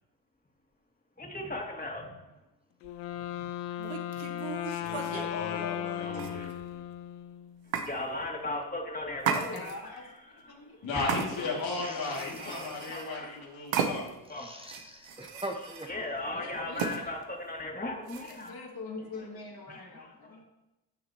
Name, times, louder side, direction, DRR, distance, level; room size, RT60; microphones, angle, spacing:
voice 1, 1.2-2.2 6.0-6.8 7.8-9.6 10.9-11.5 11.8-13.3 14.3-14.5 15.6-18.5 19.7-20.4, left 2 dB, 20° left, 0 dB, 2.6 m, -38 dB
Wind instrument woodwind instrument, 2.8-7.7, left 12 dB, 90° left, 0.6 m, -36 dB
sound 1, 2.8-3.0 3.8-5.3 6.1-6.8 7.7-7.9 9.2-10.0 11.1-11.7 12.0-13.1 13.7-14.3 14.6-15.9 16.8-17.0 18.1-18.5, right 7 dB, 65° right, 1.0 m, -35 dB
voice 2, 4.7-6.4 10.8-14.2, left 3 dB, 65° left, -3 dB, 2.5 m, -35 dB
voice 3, 9.5-10.9 16.3-17.1 18.2-20.4, left 3 dB, 45° left, -1 dB, 2.6 m, -44 dB
voice 4, 11.8-12.1 14.4-15.9, right 1 dB, 10° right, 2 dB, 1.1 m, -41 dB
15.5 x 6.5 x 3.0 m, 0.98 s
hypercardioid pair, 45°, 49 cm